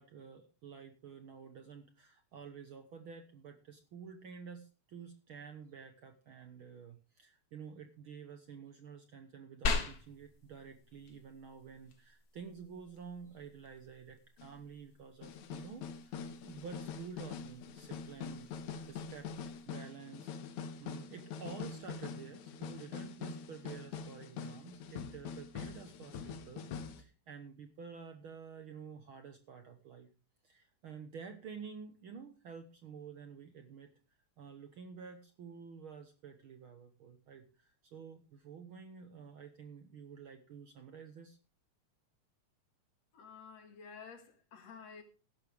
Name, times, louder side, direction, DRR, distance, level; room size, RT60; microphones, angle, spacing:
voice 1, 0.0-18.5 18.9-19.3 19.6-20.3 20.8-26.7 27.0-30.1 30.4-33.9 34.4-41.4, right 6 dB, 60° right, 1.5 m, -50 dB
sound 1, 9.6-19.6, left 3 dB, 40° left, 1.4 m, -43 dB
sound 2, 14.4-14.5 15.2-27.0, left 6 dB, 85° left, 2.5 m, -44 dB
voice 2, 43.1-45.0, left 6 dB, 65° left, 3.2 m, -51 dB
15.5 x 12.0 x 3.4 m
omnidirectional pair, 3.4 m